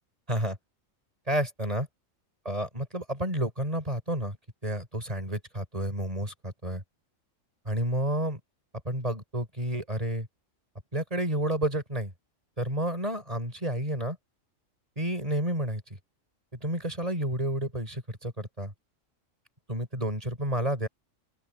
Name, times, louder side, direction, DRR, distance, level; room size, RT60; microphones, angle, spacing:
voice 1, 1.3-1.9 2.4-4.4 4.6-6.8 7.7-8.4 8.9-10.3 10.9-12.1 12.6-14.2 15.0-15.8 16.6-18.7 19.7-20.9, right 1 dB, 25° right, 5.9 m, -30 dB
open air
omnidirectional pair, 1.4 m